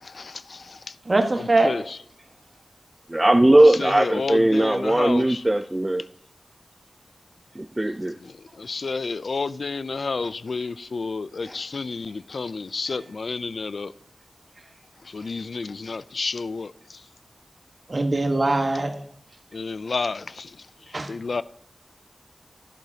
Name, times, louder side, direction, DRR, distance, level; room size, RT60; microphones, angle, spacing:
voice 1, 0.0-1.0 1.4-2.0 3.6-5.4 8.2-13.9 15.0-17.0 19.5-20.7 21.1-21.4, left 4 dB, 80° left, 0.3 m, -31 dB
voice 2, 1.0-1.7 11.5-11.6 14.6-14.7 17.9-19.0 20.9-21.1, right 2 dB, 45° right, 1.3 m, -22 dB
voice 3, 3.1-6.0 7.6-8.1, right 1 dB, 20° right, 0.4 m, -19 dB
11.5 x 10.5 x 2.8 m
wide cardioid pair, 75°, 0 cm